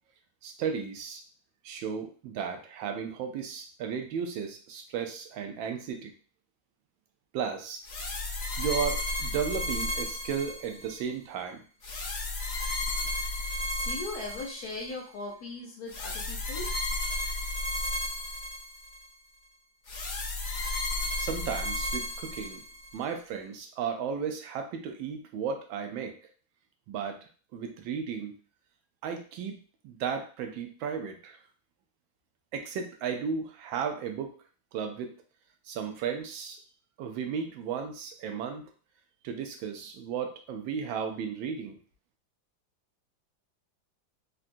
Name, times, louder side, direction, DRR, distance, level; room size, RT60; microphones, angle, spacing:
voice 1, 0.4-1.2 1.6-6.1 7.3-7.8 8.6-11.6 21.2-22.6 22.9-26.2 26.9-27.2 27.5-28.3 29.0-31.4 32.5-34.3 34.7-35.2 35.6-36.6 37.0-38.6 39.2-41.8, right 7 dB, 90° right, 5 dB, 1.4 m, -34 dB
sound 1, 7.8-11.0 11.8-14.9 15.9-19.0 19.9-23.0, left 1 dB, 45° left, 1.2 m, -33 dB
voice 2, 13.4-16.7, left 2 dB, 65° left, -1 dB, 1.0 m, -39 dB
3.8 x 2.2 x 2.5 m, 0.39 s
omnidirectional pair, 2.1 m